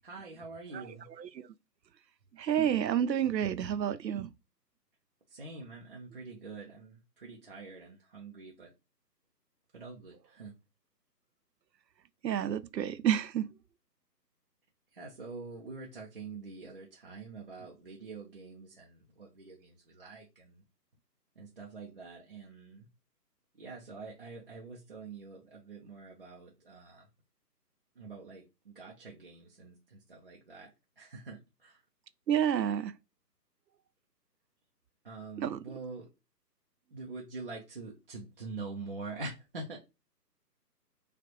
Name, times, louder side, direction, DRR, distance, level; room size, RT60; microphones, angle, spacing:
voice 1, 0.0-1.1 5.3-8.7 9.7-10.5 14.9-20.6 21.4-22.9 23.6-27.0 28.0-30.7 31.0-31.8 35.0-36.1 36.9-39.8, right 3 dB, 35° right, 0.6 m, -45 dB
voice 2, 0.7-1.4 2.4-4.3 12.2-13.5 32.3-32.9 35.4-35.6, right 9 dB, 85° right, 0.6 m, -30 dB
5.0 x 2.4 x 2.9 m
figure-of-eight pair, 155°, 50 cm